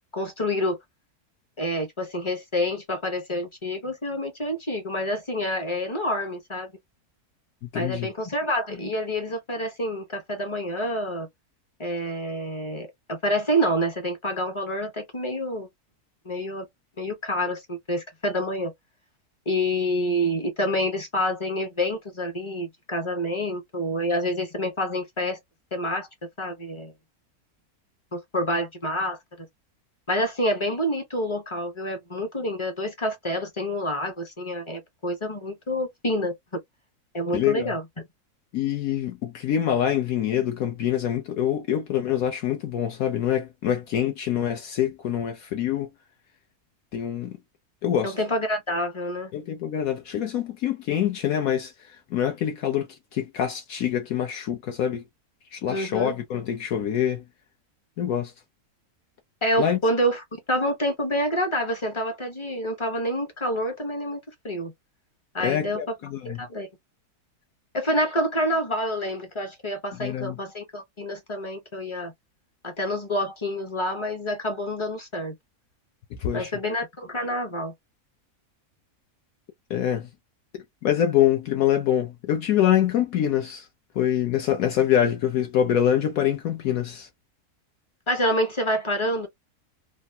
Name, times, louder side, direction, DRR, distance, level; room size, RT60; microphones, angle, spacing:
voice 1, 0.1-0.8 1.6-6.7 7.7-11.3 11.8-15.7 16.2-16.7 17.0-18.7 19.5-25.4 25.7-26.1 26.4-26.9 28.1-29.5 30.1-36.3 37.1-37.9 48.0-49.3 55.7-56.1 59.4-64.2 64.4-64.7 65.3-65.9 66.2-66.7 67.7-72.1 72.6-75.3 76.3-77.7 88.1-89.3, equal, 30° left, 0.6 m, -27 dB
voice 2, 7.6-8.1 37.3-37.7 38.5-45.9 46.9-47.4 47.8-48.1 49.3-55.0 55.5-57.2 58.0-58.3 59.6-59.8 65.4-66.5 70.0-70.4 76.2-76.5 79.7-80.1 80.5-83.7 83.9-87.1, left 10 dB, 70° left, 1.1 m, -25 dB
3.4 x 2.1 x 2.6 m
omnidirectional pair, 1.6 m